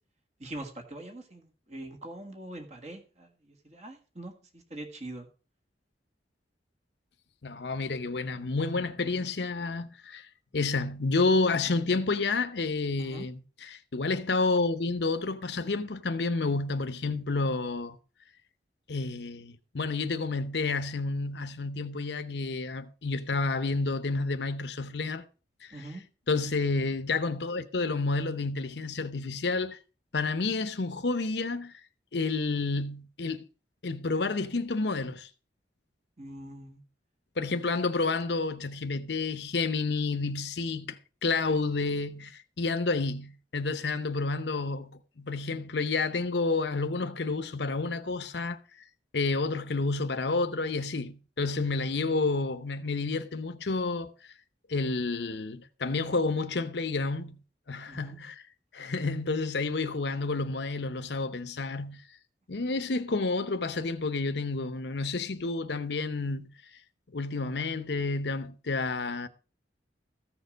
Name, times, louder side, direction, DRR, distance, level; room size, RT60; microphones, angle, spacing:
voice 1, 0.4-5.3 13.0-13.3 25.7-26.0 36.2-36.8 57.9-58.2, right 1 dB, 40° right, 1.6 m, -43 dB
voice 2, 7.4-10.3 10.5-18.0 18.9-25.2 25.6-26.0 26.3-29.8 30.1-31.8 32.1-33.4 33.8-35.3 37.4-48.6 49.1-54.3 54.7-57.4 57.7-58.4 58.7-62.0 62.5-66.8 67.1-69.3, left 3 dB, 75° left, 0.8 m, -30 dB
14.5 x 6.8 x 5.1 m
head